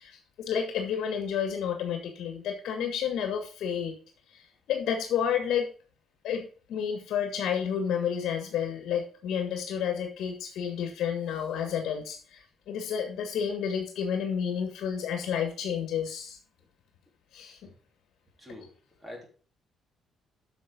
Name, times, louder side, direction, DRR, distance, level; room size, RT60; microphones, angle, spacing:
voice 1, 0.0-4.0 4.3-5.7 6.2-16.4 17.3-17.7, left 8 dB, 75° left, 4 dB, 1.8 m, -31 dB
voice 2, 18.4-19.3, left 1 dB, 10° right, -1 dB, 3.4 m, -46 dB
9.3 x 6.4 x 5.3 m, 0.40 s
cardioid pair, 150°, 0 cm